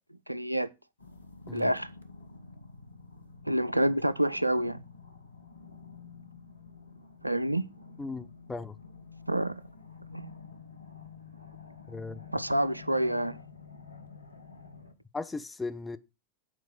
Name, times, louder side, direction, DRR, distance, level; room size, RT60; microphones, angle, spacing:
voice 1, 0.3-0.7 1.5-1.9 3.5-4.8 7.2-7.7 9.3-9.6 10.1-10.3 12.3-13.4, right 1 dB, 90° right, 0.4 m, -28 dB
sound 1, 1.0-14.9, left 5 dB, 80° left, 0.9 m, -49 dB
voice 2, 8.0-8.8 11.9-12.2 15.1-16.0, left 3 dB, 10° left, 0.6 m, -37 dB
7.4 x 4.6 x 6.0 m
figure-of-eight pair, 90°, 0 cm